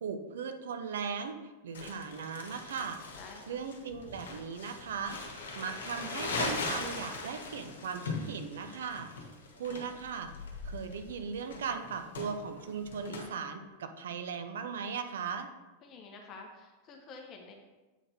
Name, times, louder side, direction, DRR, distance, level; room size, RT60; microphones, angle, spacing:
voice 1, 0.0-1.4 1.6-3.0 3.5-5.2 5.6-9.1 9.6-10.3 10.6-15.5, right 6 dB, 60° right, 7 dB, 0.6 m, -38 dB
Crumpling crinkling, 1.7-13.3, left 3 dB, 60° left, 1.3 m, -40 dB
voice 2, 3.2-3.6 15.8-17.5, left 4 dB, 35° left, 2 dB, 0.9 m, -49 dB
8.0 x 4.2 x 4.4 m, 1.2 s
figure-of-eight pair, 90°, 0 cm